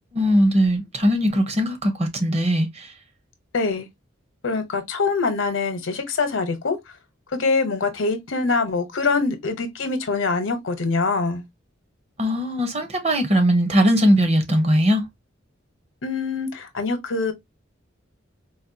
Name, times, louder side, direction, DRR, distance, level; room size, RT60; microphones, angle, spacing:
voice 1, 0.1-2.9 12.2-15.0, equal, 35° right, 0.7 m, -20 dB
voice 2, 3.5-3.9 4.4-6.8 7.4-11.4 16.0-17.3, left 4 dB, 75° left, 0.8 m, -24 dB
4.1 x 2.2 x 2.6 m
head